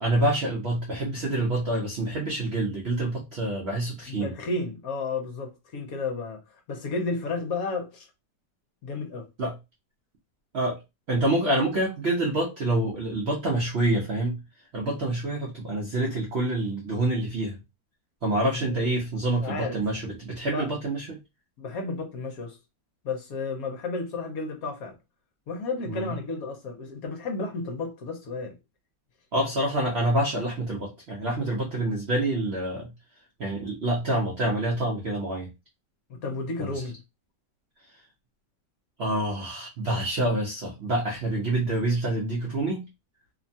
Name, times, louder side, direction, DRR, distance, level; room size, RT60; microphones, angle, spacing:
voice 1, 0.0-4.3 9.4-9.5 10.5-10.8 11.1-14.4 14.7-17.6 18.2-21.2 25.9-26.1 29.3-32.9 33.4-35.5 36.6-36.7 39.0-42.9, right 1 dB, 65° right, 0.6 m, -27 dB
voice 2, 4.1-6.4 6.7-8.1 8.8-9.3 18.5-18.9 19.4-19.8 20.4-20.7 21.6-22.6 23.0-24.9 25.5-28.6 36.1-37.0, left 3 dB, 65° left, 1.0 m, -32 dB
2.9 x 2.2 x 2.6 m
omnidirectional pair, 1.8 m